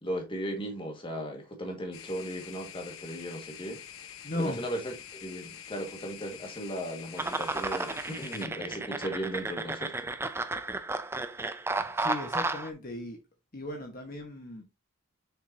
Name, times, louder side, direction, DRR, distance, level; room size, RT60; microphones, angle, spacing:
voice 1, 0.0-3.8 4.3-9.9, equal, 25° left, 1.9 m, -36 dB
sound 1, 1.9-8.5, left 9 dB, 80° left, 1.0 m, -46 dB
voice 2, 4.2-4.6 11.8-13.2 13.5-14.6, left 1 dB, 45° left, 1.4 m, -36 dB
sound 2, 7.2-12.7, right 3 dB, 10° right, 0.5 m, -33 dB
6.8 x 6.6 x 2.8 m
head